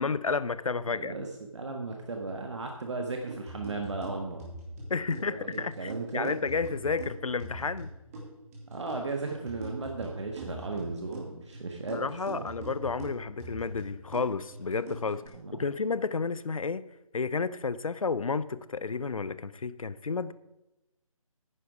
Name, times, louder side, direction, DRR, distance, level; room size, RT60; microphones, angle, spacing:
voice 1, 0.0-1.1 4.9-7.9 11.9-15.2 15.6-16.8 17.1-20.3, left 4 dB, 70° left, 0.6 m, -31 dB
voice 2, 0.9-4.4 5.3-6.3 8.7-12.4 15.3-15.6, right 3 dB, 55° right, 1.4 m, -36 dB
sound 1, 3.3-15.3, right 2 dB, 25° right, 2.9 m, -43 dB
11.0 x 9.9 x 4.8 m
figure-of-eight pair, 150°, 18 cm